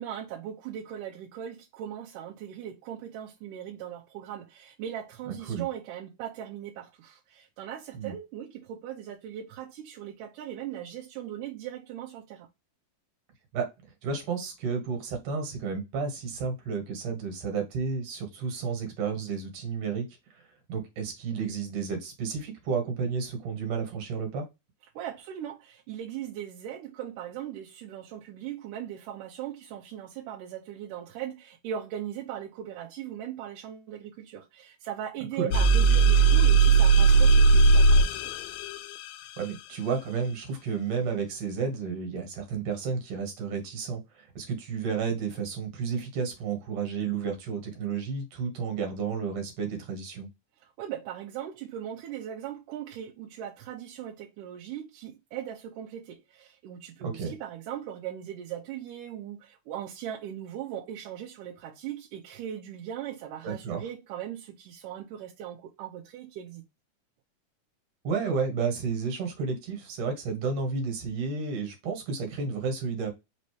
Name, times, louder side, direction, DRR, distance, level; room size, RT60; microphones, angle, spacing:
voice 1, 0.0-12.5 25.0-38.3 50.6-66.6, right 10 dB, 90° right, 2.3 m, -39 dB
voice 2, 14.0-20.1 20.3-20.4 20.7-24.4 35.4-35.5 39.4-50.3 57.0-57.3 63.4-63.8 68.0-73.1, right 5 dB, 75° right, 2.9 m, -31 dB
sound 1, 35.5-39.1, right 4 dB, 85° left, 1.5 m, -18 dB
5.3 x 2.7 x 3.2 m
omnidirectional pair, 3.7 m